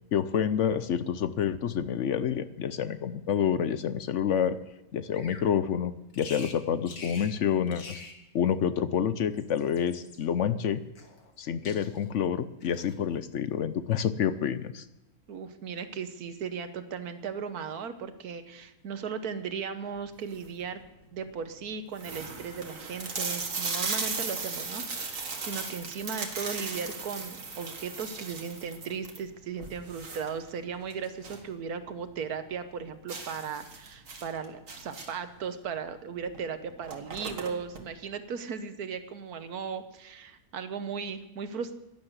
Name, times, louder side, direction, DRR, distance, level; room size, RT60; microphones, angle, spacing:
voice 1, 0.1-4.6 4.9-8.0 8.3-10.8 11.4-14.8, left 8 dB, 65° left, 13 dB, 0.9 m, -28 dB
Bird vocalization bird call bird song, 5.1-5.5 6.1-6.6 6.9-7.3 7.7-8.2 9.2-10.2 11.0-11.4 11.6-12.1 12.6-13.0, left 4 dB, 85° left, 2.1 m, -46 dB
voice 2, 15.3-20.8 21.1-41.7, right 6 dB, 85° right, 10 dB, 1.5 m, -37 dB
sound 1, 20.1-20.6 21.2-21.3 21.5-21.6 21.9-31.5 31.8-31.9 32.3-32.4 33.1-35.3 36.3-36.4 36.7-37.8, right 4 dB, 60° right, 2.0 m, -37 dB
12.0 x 10.5 x 8.0 m, 0.94 s
omnidirectional pair, 1.5 m